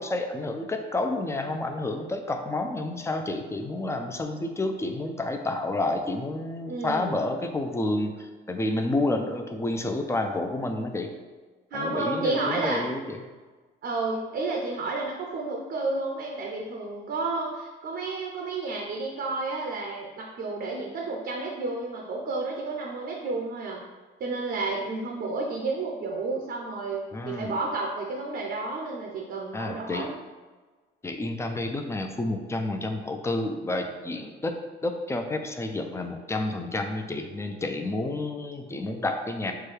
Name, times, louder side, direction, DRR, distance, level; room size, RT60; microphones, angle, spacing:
voice 1, 0.0-11.1 11.7-13.2 27.1-27.5 29.5-30.1 31.0-34.5 34.8-39.5, left 2 dB, 15° left, 5 dB, 0.5 m, -30 dB
voice 2, 6.7-7.2 11.7-12.9 13.8-23.8 24.2-30.1, right 3 dB, 60° right, 0 dB, 0.7 m, -31 dB
6.0 x 2.3 x 3.3 m, 1.3 s
cardioid pair, 90°, 20 cm